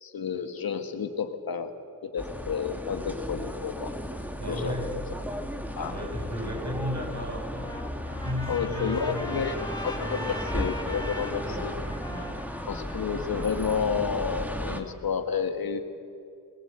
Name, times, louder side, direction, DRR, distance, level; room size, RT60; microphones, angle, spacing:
voice 1, 0.0-1.7 2.0-3.9 4.5-4.7 5.8-5.9 8.5-9.6 9.8-11.7 12.7-15.8, left 6 dB, 80° left, 6 dB, 1.8 m, -30 dB
sound 1, 2.2-14.8, equal, 5° right, 2.4 m, -35 dB
voice 2, 4.4-5.0 5.8-7.7 8.2-9.6 11.4-11.7 12.1-12.4, left 1 dB, 50° right, 1 dB, 7.3 m, -34 dB
Trumpet, 7.4-14.8, left 1 dB, 10° left, 2.6 m, -41 dB
22.0 x 20.5 x 8.1 m, 2.4 s
cardioid pair, 55°, 35 cm